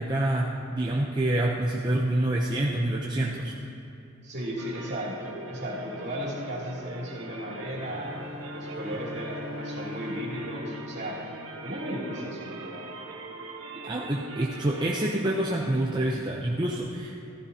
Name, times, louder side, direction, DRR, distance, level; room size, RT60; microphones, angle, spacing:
voice 1, 0.0-3.6 13.8-17.3, right 1 dB, 20° right, -3 dB, 0.6 m, -27 dB
voice 2, 4.2-8.1 8.5-11.2 11.6-12.8, equal, 50° right, -5 dB, 2.7 m, -35 dB
sound 1, 4.6-16.4, right 2 dB, 70° right, 1.1 m, -42 dB
Bowed string instrument, 7.6-12.2, left 3 dB, 80° left, 1.2 m, -42 dB
14.5 x 14.5 x 2.8 m, 2.7 s
head